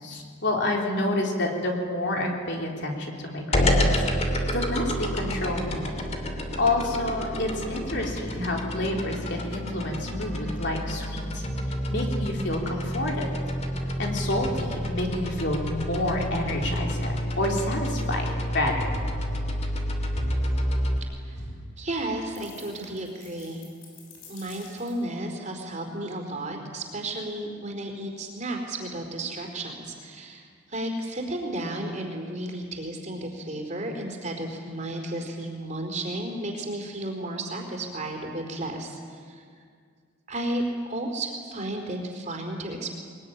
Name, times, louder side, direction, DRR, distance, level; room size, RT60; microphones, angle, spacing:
voice 1, 0.0-4.0 4.5-6.0 6.6-11.4 11.9-13.3 14.0-18.9, left 1 dB, 55° left, 0 dB, 3.8 m, -29 dB
sound 1, 3.5-21.0, equal, 30° left, 2.8 m, -29 dB
voice 2, 21.0-21.4 21.8-23.6 24.3-39.4 40.3-42.9, right 1 dB, 35° right, 2 dB, 4.3 m, -33 dB
sound 2, 22.3-25.1, left 5 dB, 85° left, 7.7 m, -50 dB
23.0 x 21.5 x 9.9 m, 2.1 s
head